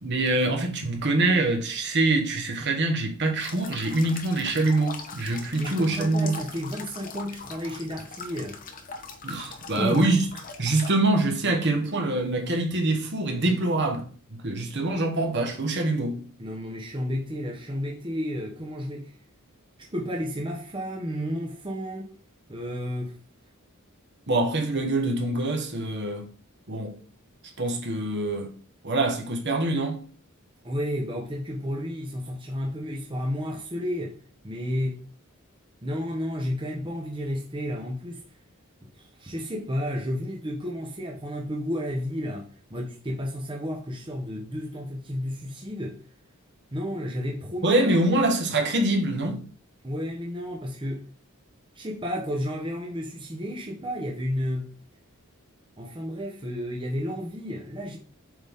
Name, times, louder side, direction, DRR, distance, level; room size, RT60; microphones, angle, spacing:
voice 1, 0.0-6.3 9.2-10.2 10.6-16.2 24.3-26.3 26.7-27.0 27.6-28.5 28.8-30.0 47.6-49.4, right 2 dB, 55° right, 1.4 m, -25 dB
sound 1, 3.4-10.9, left 4 dB, 40° left, 0.9 m, -41 dB
voice 2, 5.6-8.6 9.7-10.1 16.4-19.1 19.8-22.1 22.5-23.2 30.6-34.2 34.4-35.0 35.8-38.2 38.8-46.0 46.7-47.8 49.8-51.1 51.7-54.7 55.8-58.0, equal, 25° right, 1.0 m, -32 dB
7.8 x 4.0 x 3.6 m
head